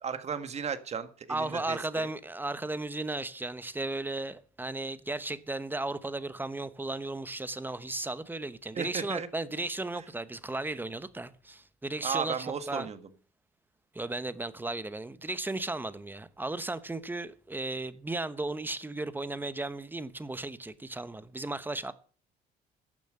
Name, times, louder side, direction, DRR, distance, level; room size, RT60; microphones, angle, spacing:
voice 1, 0.0-2.1 8.7-9.3 12.0-13.0, right 6 dB, 40° right, 1.6 m, -35 dB
voice 2, 1.3-12.9 13.9-21.9, right 2 dB, 10° right, 0.9 m, -35 dB
11.5 x 7.1 x 8.8 m
cardioid pair, 110°, 17 cm